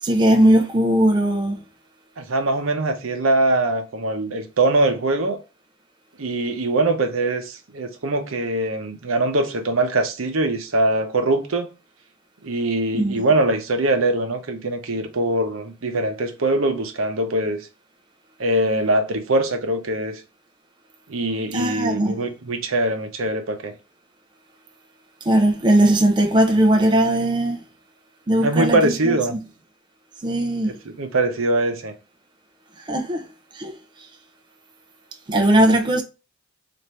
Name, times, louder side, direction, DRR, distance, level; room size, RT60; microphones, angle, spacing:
voice 1, 0.0-1.6 12.9-13.2 21.5-22.2 25.2-27.6 28.3-29.4 30.2-30.8 32.9-33.3 33.5-33.8 35.3-36.0, right 1 dB, 20° right, 0.5 m, -18 dB
voice 2, 2.2-5.4 6.2-11.7 12.4-17.7 18.4-20.2 21.1-23.7 28.4-29.3 30.6-31.9, right 2 dB, 75° right, 0.8 m, -22 dB
4.2 x 2.6 x 3.3 m
head